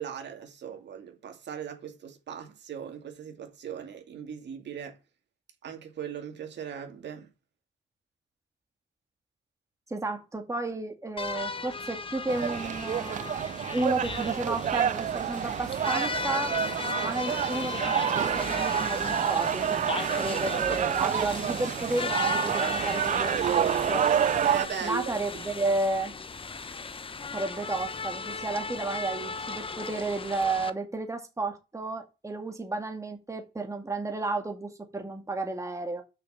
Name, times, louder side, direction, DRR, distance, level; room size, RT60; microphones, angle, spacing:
voice 1, 0.0-5.0 5.6-7.3 20.2-20.6 24.4-25.5, right 8 dB, 60° right, 2.6 m, -39 dB
voice 2, 9.9-13.4 13.7-16.5 17.0-24.1 24.8-26.1 27.3-36.0, right 2 dB, 15° right, 2.1 m, -32 dB
sound 1, 11.2-30.7, left 4 dB, 25° left, 1.1 m, -36 dB
sound 2, 12.3-24.7, right 9 dB, 40° right, 0.4 m, -28 dB
6.6 x 5.9 x 7.3 m
cardioid pair, 90°, 20 cm